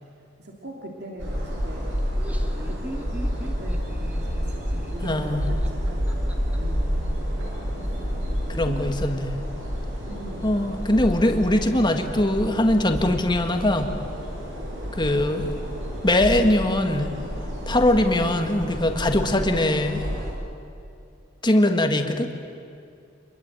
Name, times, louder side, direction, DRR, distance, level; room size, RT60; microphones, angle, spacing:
voice 1, 0.0-2.0 2.3-6.1 6.5-8.3 8.6-8.9 10.0-10.5, right 1 dB, 60° right, -1 dB, 3.0 m, -41 dB
sound 1, 1.2-20.3, equal, 90° right, 7.3 m, -29 dB
Laughter, 2.0-6.6, equal, 10° right, 1.7 m, -40 dB
voice 2, 5.0-5.5 8.5-9.3 10.4-13.9 14.9-15.6 16.0-17.1 17.7-20.0 21.4-22.3, left 1 dB, 25° left, 5 dB, 1.9 m, -21 dB
26.5 x 22.0 x 9.1 m, 2.5 s
head